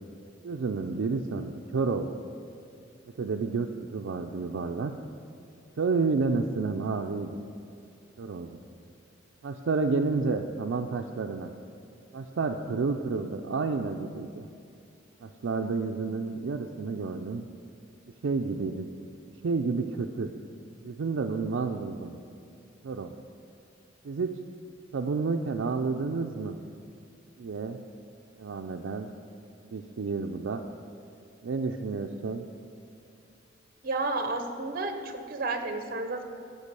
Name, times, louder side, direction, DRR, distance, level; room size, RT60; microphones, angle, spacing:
voice 1, 0.4-2.1 3.2-4.9 5.8-7.4 8.2-8.6 9.4-11.5 12.1-14.5 15.2-17.4 18.2-18.9 19.4-20.3 20.8-22.2 22.8-23.1 24.0-24.3 24.9-26.6 27.4-27.8 28.4-29.1 29.7-30.6 31.4-32.4, right 4 dB, 80° right, 3 dB, 0.4 m, -30 dB
voice 2, 33.8-36.2, right 3 dB, 50° right, 7 dB, 0.8 m, -31 dB
8.2 x 6.5 x 6.8 m, 2.5 s
head